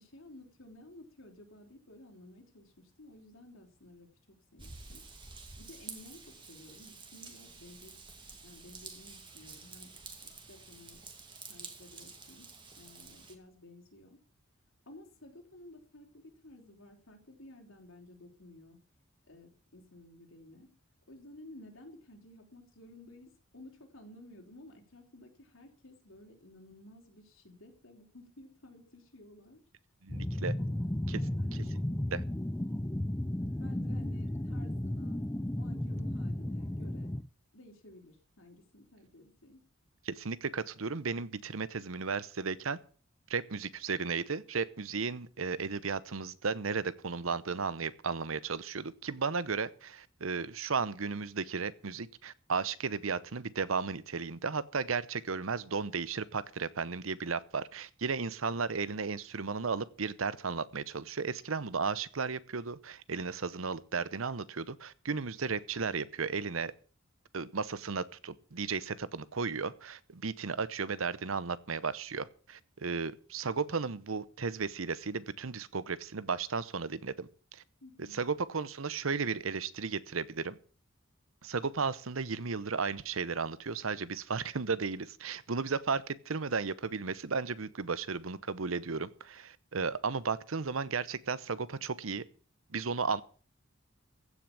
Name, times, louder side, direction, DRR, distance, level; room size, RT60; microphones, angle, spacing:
voice 1, 0.0-5.0 5.6-7.9 8.4-9.9 10.5-11.0 11.5-12.5 12.8-14.2 14.9-18.8 19.3-20.7 21.1-29.6 30.5-31.7 33.6-35.2 35.6-37.1 37.5-39.6 77.8-78.2, left 1 dB, 75° left, 3.8 m, -54 dB
Raindrop / Vehicle horn car horn honking / Trickle dribble, 4.6-13.4, right 4 dB, 25° right, 2.3 m, -49 dB
voice 2, 30.0-30.5 31.1-31.2 32.1-32.2 40.1-42.8 43.3-66.7 67.3-77.6 78.1-80.6 81.4-92.2 92.7-93.2, right 5 dB, 80° right, 0.9 m, -34 dB
sound 1, 30.1-37.2, left 1 dB, 10° left, 0.6 m, -34 dB
15.5 x 6.2 x 8.5 m
head